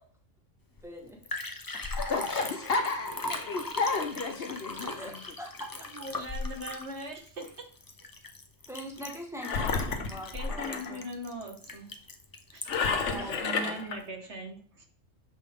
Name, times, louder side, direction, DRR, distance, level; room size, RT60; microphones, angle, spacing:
Liquid, 0.8-0.9 1.1-13.0 13.4-13.5, left 2 dB, 25° left, 0.6 m, -38 dB
voice 1, 0.8-1.5 1.7-1.8 5.0-5.1 5.4-5.7 8.7-11.1 12.8-14.0, equal, ahead, 0 dB, 1.5 m, -43 dB
voice 2, 2.0-5.1, left 4 dB, 55° left, 6 dB, 1.0 m, -32 dB
voice 3, 5.9-7.6 10.3-11.9 12.5-12.7 13.1-14.8, right 1 dB, 65° right, 3 dB, 1.8 m, -40 dB
Engine, 9.4-10.9 12.7-14.0, left 5 dB, 75° left, 1.2 m, -31 dB
7.3 x 5.4 x 3.6 m, 0.44 s
omnidirectional pair, 1.3 m